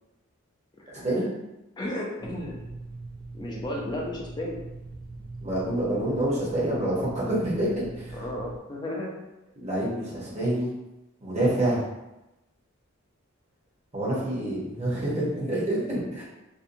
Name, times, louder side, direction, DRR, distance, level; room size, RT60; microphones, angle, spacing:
voice 1, 0.8-1.3 1.8-2.6 3.3-4.6 8.1-9.1, left 1 dB, 20° left, -2 dB, 0.4 m, -34 dB
sound 1, 2.2-8.6, right 3 dB, 80° right, 0.7 m, -41 dB
voice 2, 5.4-8.1 9.6-10.7 11.2-11.8 13.9-16.2, right 1 dB, 35° right, -7 dB, 0.9 m, -27 dB
2.6 x 2.2 x 2.6 m, 0.97 s
head